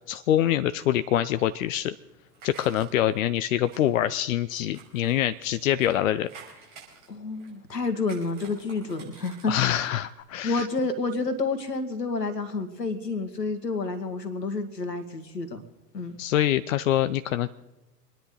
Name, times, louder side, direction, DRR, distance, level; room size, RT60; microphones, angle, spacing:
voice 1, 0.0-1.9 2.4-6.3 9.5-10.7 16.2-17.5, left 12 dB, 55° left, 13 dB, 0.6 m, -25 dB
sound 1, 1.6-3.2 3.6-5.9 6.2-7.7 8.0-9.9 10.2-10.3, right 5 dB, 45° right, 5.8 m, -50 dB
voice 2, 7.1-10.0 10.4-15.6 15.9-16.2, left 3 dB, 75° left, 9 dB, 2.0 m, -29 dB
25.5 x 10.5 x 3.9 m, 1.1 s
figure-of-eight pair, 90°, 49 cm